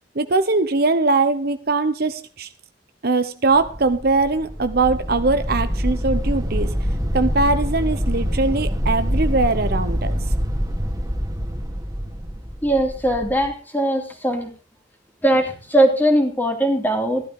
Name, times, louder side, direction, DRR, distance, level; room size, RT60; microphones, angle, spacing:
voice 1, 0.1-2.5 3.0-6.7 7.1-10.2, right 3 dB, 55° right, 10 dB, 0.9 m, -21 dB
sound 1, 3.5-13.5, equal, 20° right, 2.6 m, -25 dB
voice 2, 12.6-14.5 15.2-17.2, right 1 dB, 10° left, 3 dB, 2.7 m, -20 dB
15.0 x 12.0 x 3.8 m, 0.34 s
head